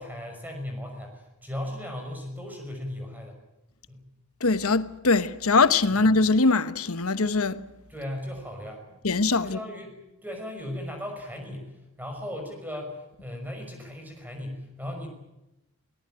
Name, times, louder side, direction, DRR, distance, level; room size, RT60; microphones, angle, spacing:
voice 1, 0.0-3.4 3.9-4.0 7.9-8.9 9.4-15.1, left 1 dB, 10° right, 5.8 m, -37 dB
voice 2, 4.4-7.6 9.0-9.6, left 3 dB, 75° left, 1.2 m, -22 dB
23.5 x 18.5 x 8.9 m
head